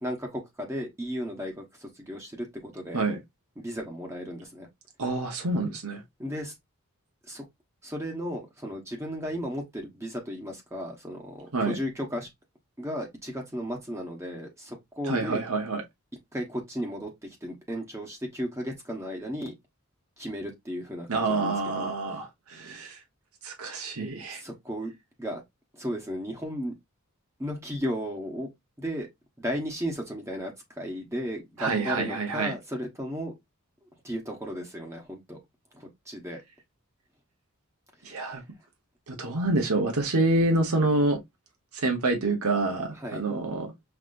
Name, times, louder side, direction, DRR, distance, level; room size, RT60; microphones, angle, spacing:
voice 1, 0.0-3.0 3.6-4.7 6.2-6.5 7.3-7.5 7.8-12.3 12.8-15.4 16.3-17.1 17.4-19.5 20.2-21.9 24.3-24.9 25.2-25.4 25.7-26.7 27.4-28.5 28.8-29.1 29.4-33.3 34.0-35.4 35.7-36.4 38.0-38.4 42.9-43.2, equal, 15° right, 1.2 m, -35 dB
voice 2, 5.0-6.0 11.5-11.8 15.1-15.8 21.1-23.0 23.4-24.4 31.6-32.5 38.0-38.4 39.1-41.2 41.7-43.7, right 2 dB, 90° right, 1.1 m, -27 dB
5.7 x 2.9 x 2.5 m
head